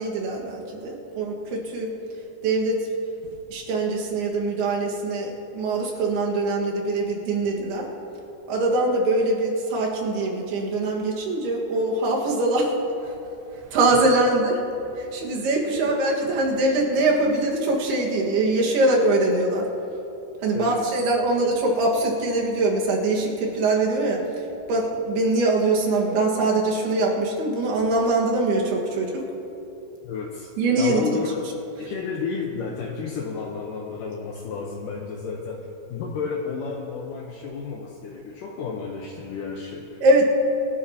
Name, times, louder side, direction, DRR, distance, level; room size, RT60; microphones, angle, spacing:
voice 1, 0.0-2.0 2.4-2.9 3.5-7.9 8.5-12.7 13.0-13.2 13.5-14.6 15.0-19.7 20.4-24.2 24.7-29.3 30.6-31.0 40.0-40.2, right 2 dB, 75° right, -1 dB, 3.5 m, -23 dB
voice 2, 20.5-21.0 30.0-30.5 30.8-31.4 31.8-40.0, left 5 dB, 75° left, -1 dB, 2.1 m, -32 dB
25.0 x 12.5 x 2.9 m, 2.9 s
omnidirectional pair, 4.7 m